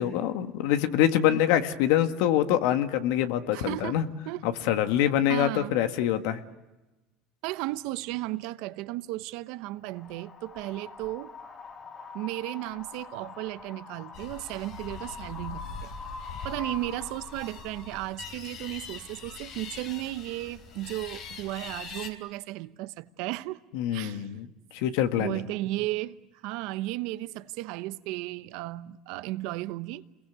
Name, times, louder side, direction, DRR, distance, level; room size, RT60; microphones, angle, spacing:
voice 1, 0.0-4.1 4.4-6.4 23.7-24.5 24.7-25.4, left 11 dB, 75° left, 1.7 m, -25 dB
voice 2, 3.5-4.0 4.3-4.4 5.3-5.7 7.4-11.3 12.1-15.9 16.4-23.6 23.9-24.3 25.2-30.0, right 18 dB, 70° right, 0.9 m, -34 dB
Wind, 9.8-17.9, left 4 dB, 35° left, 2.7 m, -44 dB
sound 1, 14.1-22.1, left 5 dB, 55° left, 3.6 m, -43 dB
28.5 x 22.0 x 8.1 m
supercardioid pair, 115°, 0 cm